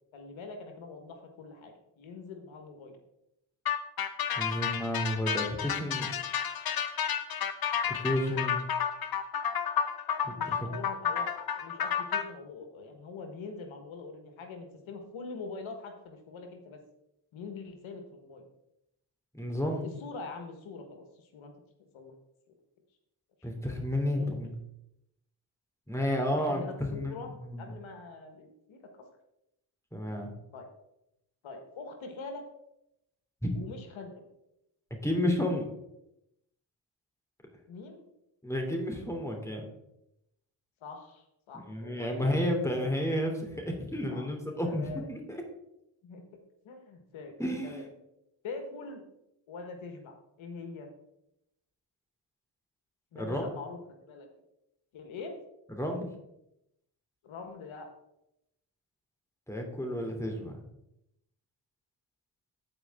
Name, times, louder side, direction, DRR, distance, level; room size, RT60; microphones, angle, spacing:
voice 1, 0.1-3.0 10.3-16.8 17.3-18.4 20.0-21.5 21.9-22.1 23.4-23.5 24.2-24.4 26.4-27.3 27.6-29.0 30.5-30.7 31.4-32.4 33.5-34.1 37.7-38.0 40.8-42.3 44.1-44.3 44.6-45.1 46.0-46.2 46.6-47.3 47.6-47.9 48.4-49.0 49.5-50.9 53.1-54.3 54.9-55.3 57.2-57.9, left 4 dB, 70° left, 4 dB, 1.6 m, -44 dB
sound 1, 3.7-12.2, left 8 dB, 50° left, 0.9 m, -31 dB
voice 2, 4.4-6.1 7.8-8.7 10.2-10.8 19.3-19.9 23.4-24.5 25.9-27.6 29.9-30.3 33.4-33.5 35.0-35.6 38.4-39.6 41.7-45.4 47.4-47.9 53.1-53.4 55.7-56.1 59.5-60.6, left 1 dB, 5° left, 1 dB, 3.1 m, -31 dB
14.5 x 4.9 x 3.7 m, 0.84 s
supercardioid pair, 55°, 48 cm